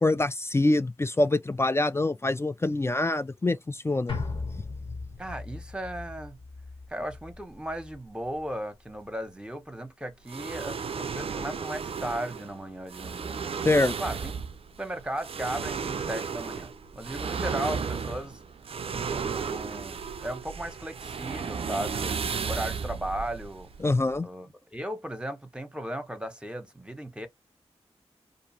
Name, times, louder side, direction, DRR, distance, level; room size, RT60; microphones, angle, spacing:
voice 1, 0.0-4.2 13.7-13.9 23.8-24.3, left 2 dB, 25° left, 0.3 m, -25 dB
sound 1, 4.1-8.5 8.9-9.0, left 4 dB, 50° left, 1.0 m, -38 dB
voice 2, 5.2-6.4 6.9-13.6 14.0-14.3 14.8-18.4 18.9-22.1 22.4-23.7 24.2-27.3, right 1 dB, 10° right, 0.9 m, -36 dB
sound 2, 10.3-24.2, right 6 dB, 55° right, 0.4 m, -34 dB
2.5 x 2.3 x 2.8 m
cardioid pair, 40°, 11 cm